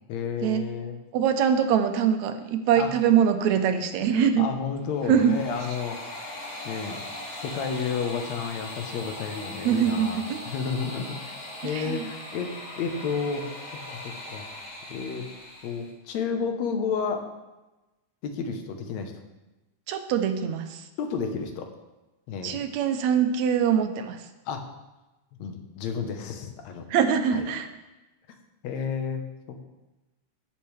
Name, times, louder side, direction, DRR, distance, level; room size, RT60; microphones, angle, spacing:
voice 1, 0.1-1.0 2.7-2.9 4.0-6.0 6.7-7.0 7.4-11.3 11.6-14.4 14.9-15.3 15.6-17.3 18.2-19.1 21.0-21.7 22.3-22.6 24.5-24.6 25.4-26.8 27.3-27.4 28.6-29.6, left 6 dB, 70° left, 5 dB, 2.1 m, -31 dB
voice 2, 1.1-4.5 5.1-5.4 9.6-10.4 11.6-12.1 19.9-20.8 22.4-24.2 26.9-27.7, right 8 dB, 75° right, 7 dB, 1.8 m, -23 dB
sound 1, 4.8-15.9, left 1 dB, 90° left, 5.8 m, -39 dB
16.5 x 6.7 x 3.3 m, 1.1 s
omnidirectional pair, 3.5 m